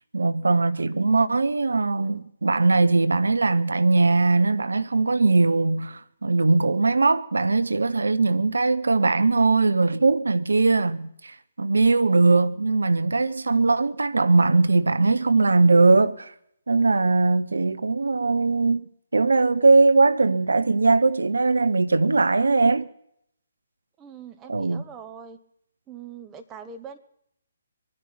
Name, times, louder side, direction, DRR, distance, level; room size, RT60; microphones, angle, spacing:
voice 1, 0.1-16.3 16.7-18.8 19.1-22.9 24.5-24.8, right 3 dB, 75° right, 0.9 m, -20 dB
voice 2, 24.0-25.4 25.9-27.0, right 6 dB, 15° right, 1.2 m, -42 dB
23.0 x 9.8 x 5.9 m
figure-of-eight pair, 140°, 0 cm